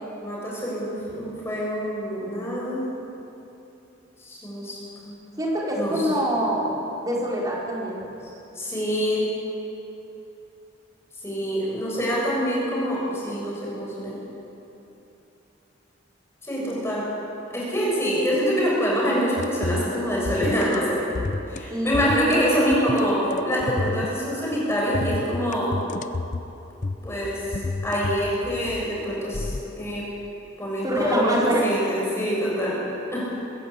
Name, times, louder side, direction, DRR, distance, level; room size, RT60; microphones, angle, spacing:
voice 1, 0.2-2.8 4.2-4.8 5.0-5.2 5.7-5.9 8.6-9.3 11.2-14.2 16.4-17.1 17.5-21.0 21.5-25.7 27.0-30.1 30.6-32.8 33.1-33.3, equal, 15° left, -5 dB, 7.1 m, -25 dB
voice 2, 5.4-6.7 7.0-8.0 16.6-16.8 21.7-22.0 22.3-22.5 30.8-31.6, equal, 20° right, -4 dB, 4.4 m, -25 dB
sound 1, 19.4-20.0 20.2-20.8 21.1-21.6 21.9-22.4 22.7-24.3 24.9-26.5 26.8-28.9 29.3-29.6, left 3 dB, 40° left, 0.6 m, -30 dB
24.0 x 15.0 x 8.5 m, 2.9 s
head